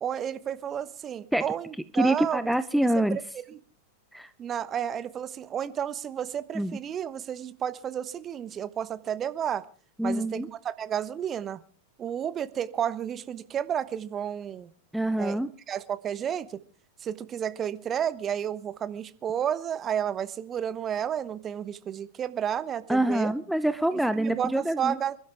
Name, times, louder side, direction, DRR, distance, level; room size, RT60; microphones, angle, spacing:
voice 1, 0.0-2.5 3.1-3.6 4.4-9.6 10.0-11.6 12.0-14.7 15.2-15.4 15.7-16.6 17.0-23.3 23.9-25.2, right 9 dB, 25° right, 14 dB, 1.1 m, -31 dB
voice 2, 1.9-3.2 4.1-4.3 6.5-6.8 10.0-10.5 14.9-15.5 22.9-25.0, right 1 dB, ahead, 12 dB, 0.7 m, -25 dB
27.5 x 12.0 x 3.5 m, 0.39 s
figure-of-eight pair, 90°, 0 cm